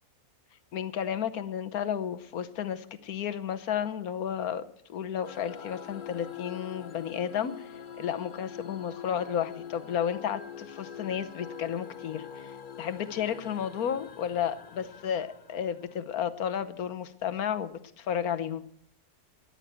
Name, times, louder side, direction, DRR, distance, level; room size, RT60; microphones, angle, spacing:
voice 1, 0.7-4.6 4.9-7.7 8.0-12.5 12.8-18.7, left 8 dB, 75° left, 11 dB, 1.3 m, -32 dB
sound 1, 5.2-16.2, left 8 dB, 50° left, 0.6 m, -44 dB
13.5 x 9.7 x 8.1 m, 0.69 s
omnidirectional pair, 1.6 m